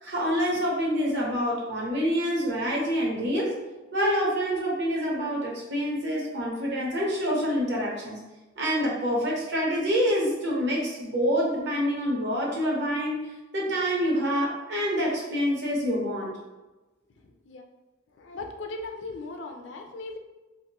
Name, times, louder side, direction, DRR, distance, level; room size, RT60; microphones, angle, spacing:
voice 1, 0.0-3.5 3.9-8.2 8.6-13.2 13.5-16.3, equal, 60° right, -3 dB, 1.0 m, -26 dB
voice 2, 18.2-20.2, left 2 dB, 65° left, 4 dB, 0.4 m, -38 dB
3.5 x 2.6 x 2.9 m, 1.1 s
head